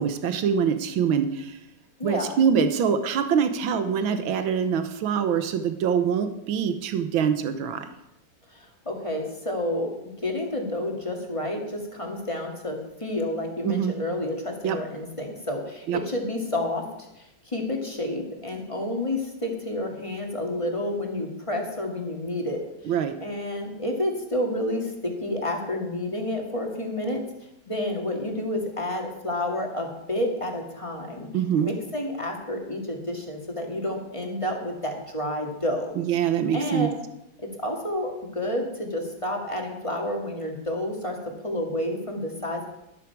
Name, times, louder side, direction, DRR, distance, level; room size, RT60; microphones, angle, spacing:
voice 1, 0.0-1.6 2.0-7.9 13.6-13.9 14.6-14.8 15.9-16.0 22.9-23.2 31.3-31.7 36.0-36.9, right 7 dB, 85° right, 9 dB, 1.8 m, -24 dB
voice 2, 2.0-2.4 8.5-22.9 23.2-27.2 27.7-31.3 31.6-36.0 36.5-36.9 37.4-41.2 41.4-42.7, left 1 dB, 15° left, 1 dB, 1.9 m, -30 dB
12.5 x 12.5 x 4.7 m, 0.87 s
omnidirectional pair, 2.1 m